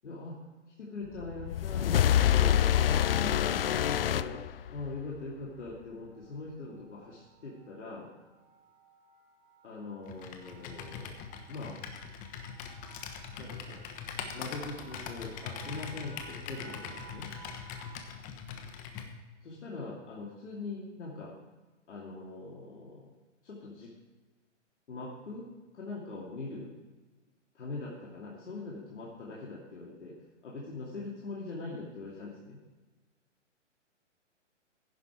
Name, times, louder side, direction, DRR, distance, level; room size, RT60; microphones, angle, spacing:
voice 1, 0.0-0.4 0.8-4.4 4.7-8.1 9.6-11.1 11.5-11.8 13.4-13.8 14.3-17.3 19.4-21.4 21.9-23.1 23.4-23.9 24.9-25.5 25.7-26.7 27.5-30.2 30.4-32.6, left 3 dB, 65° left, -4 dB, 2.7 m, -42 dB
sound 1, 1.2-5.0, left 10 dB, 50° left, 0.5 m, -26 dB
sound 2, 6.1-18.2, right 4 dB, 45° right, 5.0 m, -56 dB
Computer keyboard, 10.1-19.1, left 7 dB, 20° left, 1.2 m, -42 dB
15.5 x 10.5 x 4.7 m, 1.2 s
figure-of-eight pair, 125°, 37 cm